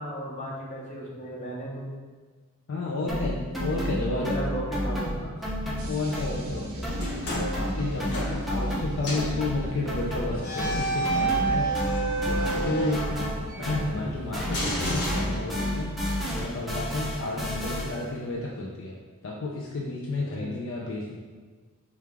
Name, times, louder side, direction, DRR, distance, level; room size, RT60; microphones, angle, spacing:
voice 1, 0.0-1.9 4.0-5.3 17.7-17.9 20.4-20.8, equal, 30° left, -4 dB, 0.8 m, -35 dB
voice 2, 2.7-4.3 4.8-5.0 5.8-6.9 7.2-11.7 12.3-13.3 13.6-15.9 16.3-19.0 19.2-21.2, left 2 dB, 60° left, -2 dB, 0.4 m, -32 dB
sound 1, 3.1-6.5 6.8-14.1 14.3-18.1, equal, ahead, 0.5 m, -31 dB
sound 2, 5.8-14.4, equal, 70° right, 0.6 m, -38 dB
sound 3, 6.9-8.8 9.0-9.4 10.4-13.6 14.5-15.9, right 2 dB, 90° left, 1.1 m, -30 dB
4.8 x 2.4 x 3.3 m, 1.4 s
head